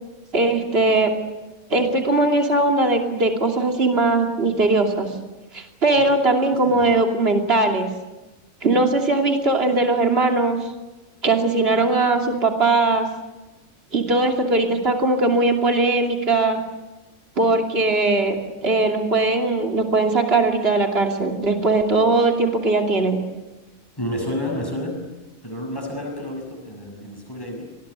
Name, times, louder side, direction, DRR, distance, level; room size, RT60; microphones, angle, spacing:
voice 1, 0.3-1.1 1.7-5.1 5.5-7.9 8.6-10.6 11.2-13.1 13.9-16.6 17.4-23.2, right 2 dB, 45° right, 2 dB, 3.1 m, -20 dB
voice 2, 24.0-25.1 25.4-27.7, left 1 dB, 15° left, 2 dB, 6.7 m, -30 dB
26.0 x 20.0 x 8.2 m, 1.1 s
omnidirectional pair, 1.4 m